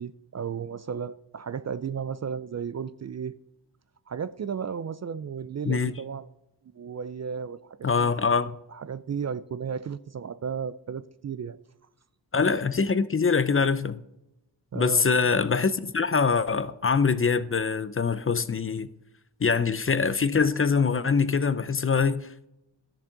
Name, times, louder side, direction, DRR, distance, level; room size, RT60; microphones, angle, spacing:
voice 1, 0.0-3.3 4.1-6.3 6.7-8.1 8.7-11.6 14.7-15.1, right 7 dB, 40° right, 0.4 m, -34 dB
voice 2, 7.8-8.6 12.3-14.0 14.7-18.9 19.4-22.5, left 5 dB, 30° left, 0.5 m, -24 dB
13.0 x 7.2 x 3.8 m
cardioid pair, 60°, 45 cm